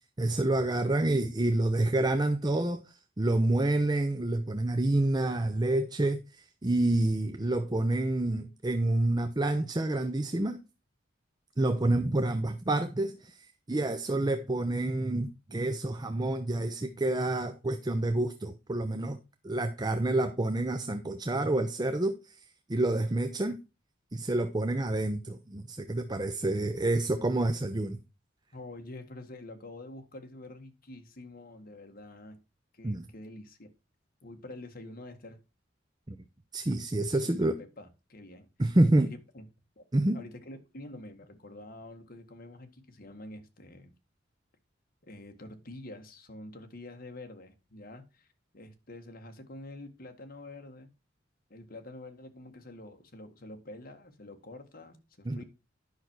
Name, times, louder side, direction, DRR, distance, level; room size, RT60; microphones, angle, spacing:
voice 1, 0.2-2.8 3.2-10.6 11.6-13.4 13.7-19.2 19.4-22.1 22.7-23.6 24.1-28.0 32.8-33.0 36.1-36.2 36.5-37.6 38.6-39.1 39.9-40.2 55.3-55.4, right 2 dB, 20° right, 0.6 m, -28 dB
voice 2, 28.5-32.4 32.7-33.7 34.2-35.4 37.1-38.5 39.0-39.4 39.8-39.9 40.1-43.9 45.0-48.3 48.5-50.9 51.5-55.4, left 2 dB, 50° left, 1.7 m, -47 dB
10.0 x 6.0 x 4.6 m
head